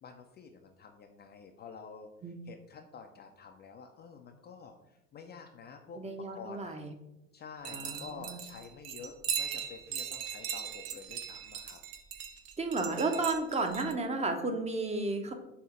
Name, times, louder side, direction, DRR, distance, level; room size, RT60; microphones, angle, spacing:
voice 1, 0.0-2.1 2.5-4.8 5.1-6.0 6.3-6.8 7.3-11.8, left 5 dB, 25° left, 4 dB, 0.5 m, -49 dB
voice 2, 6.0-6.9 7.7-8.4 12.6-15.3, right 3 dB, 15° right, 5 dB, 0.8 m, -33 dB
sound 1, 7.6-13.9, right 8 dB, 50° right, 0.9 m, -39 dB
7.1 x 2.7 x 5.0 m, 0.92 s
figure-of-eight pair, 70°, 40 cm